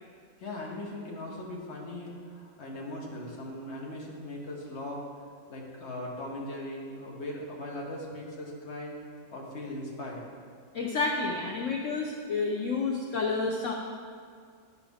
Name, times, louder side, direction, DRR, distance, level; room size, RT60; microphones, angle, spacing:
voice 1, 0.4-5.0 5.5-8.9 9.3-10.2, left 1 dB, 45° left, -2 dB, 1.2 m, -39 dB
voice 2, 10.7-13.7, left 4 dB, 80° left, 0 dB, 0.6 m, -30 dB
10.5 x 4.6 x 3.5 m, 2.1 s
omnidirectional pair, 2.0 m